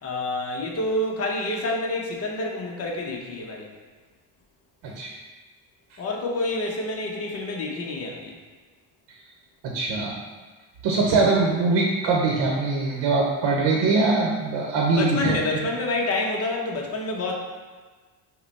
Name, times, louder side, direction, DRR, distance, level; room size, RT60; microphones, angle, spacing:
voice 1, 0.0-3.7 6.0-8.3 15.0-17.3, left 2 dB, 35° left, -1 dB, 0.8 m, -28 dB
voice 2, 9.7-10.1 10.8-15.4, right 3 dB, 75° right, -1 dB, 0.9 m, -22 dB
5.6 x 2.2 x 4.1 m, 1.4 s
cardioid pair, 115°, 44 cm